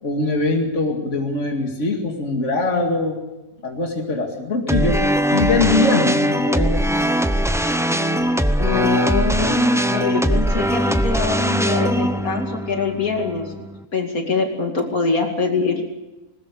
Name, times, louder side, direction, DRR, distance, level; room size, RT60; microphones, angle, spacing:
voice 1, 0.0-3.2 3.6-5.0 5.3-6.8, left 2 dB, 55° left, 2 dB, 2.6 m, -22 dB
sound 1, 4.7-13.8, equal, 5° right, 0.5 m, -21 dB
voice 2, 8.6-15.8, left 4 dB, 70° left, 3 dB, 2.9 m, -23 dB
20.5 x 19.5 x 6.8 m, 1.1 s
omnidirectional pair, 1.5 m